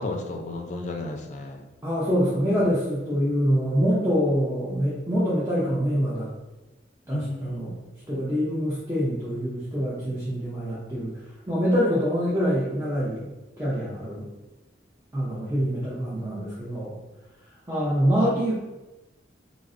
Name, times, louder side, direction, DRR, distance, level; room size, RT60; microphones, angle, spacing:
voice 1, 0.0-1.6 7.1-7.7, left 2 dB, 40° left, 2 dB, 0.4 m, -33 dB
voice 2, 1.8-6.3 7.1-7.7 8.1-11.1 11.5-13.2 13.6-14.3 15.1-16.9 17.7-18.5, equal, 15° right, -9 dB, 0.5 m, -25 dB
3.8 x 2.0 x 2.5 m, 1.1 s
head